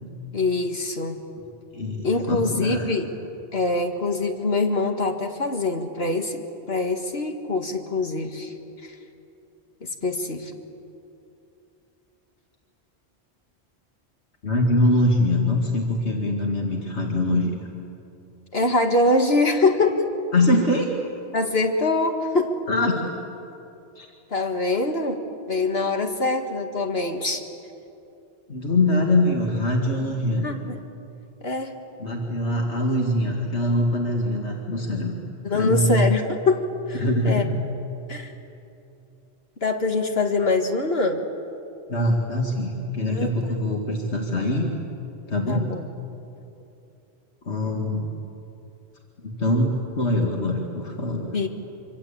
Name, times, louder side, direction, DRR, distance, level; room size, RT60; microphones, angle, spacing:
voice 1, 0.3-1.2 2.0-3.1 3.5-8.5 8.8-8.9 9.8-10.5 18.5-20.1 21.3-22.5 24.3-25.2 25.5-27.4 30.0-30.2 30.4-30.8 31.4-31.7 35.4-37.4 38.1-38.3 39.6-41.2 43.1-43.6 45.5-45.9 51.3-51.5, left 3 dB, 65° left, 4 dB, 2.1 m, -24 dB
voice 2, 1.7-3.0 14.4-17.6 20.3-20.9 22.7-23.0 24.0-24.1 28.5-30.5 32.0-35.1 35.5-36.1 36.9-37.5 41.9-44.7 45.3-45.7 47.4-48.1 49.2-51.4, left 1 dB, 85° left, 0 dB, 2.5 m, -23 dB
26.0 x 25.5 x 8.7 m, 2.8 s
omnidirectional pair, 1.1 m